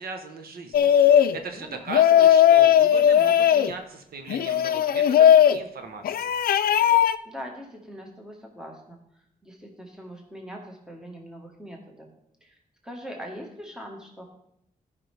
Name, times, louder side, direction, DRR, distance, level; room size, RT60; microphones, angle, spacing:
voice 1, 0.0-6.3, right 4 dB, 90° right, 6 dB, 1.1 m, -38 dB
sound 1, 0.7-1.4 1.9-3.7 4.3-5.6 6.0-7.2, left 10 dB, 80° left, 0.4 m, -17 dB
voice 2, 1.5-1.9 7.2-12.1 12.4-12.6 12.8-14.2, equal, 5° right, 1 dB, 1.6 m, -42 dB
13.5 x 5.5 x 3.4 m, 0.77 s
cardioid pair, 100°, 15 cm